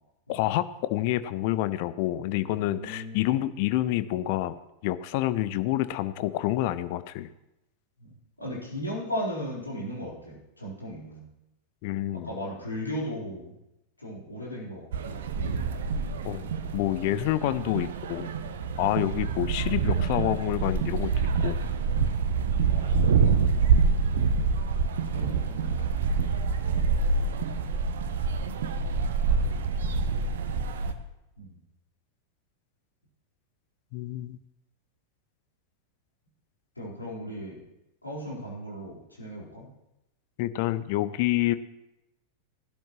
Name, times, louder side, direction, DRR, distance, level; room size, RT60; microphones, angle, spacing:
voice 1, 0.3-4.6 4.8-7.3 11.8-12.3 16.2-18.3 18.8-21.1 21.4-21.6 33.9-34.4 40.4-41.5, left 15 dB, 45° left, 14 dB, 0.7 m, -28 dB
voice 2, 2.3-3.4 8.0-8.1 8.4-11.2 12.1-13.5 14.0-16.3 19.3-19.5 22.5-23.8 25.1-25.9 31.4-31.6 36.8-37.6 38.0-39.7, equal, 80° left, -5 dB, 4.3 m, -37 dB
sound 1, 14.9-30.9, right 5 dB, 60° right, 0.9 m, -26 dB
19.0 x 11.5 x 3.1 m, 0.89 s
figure-of-eight pair, 90°, 0 cm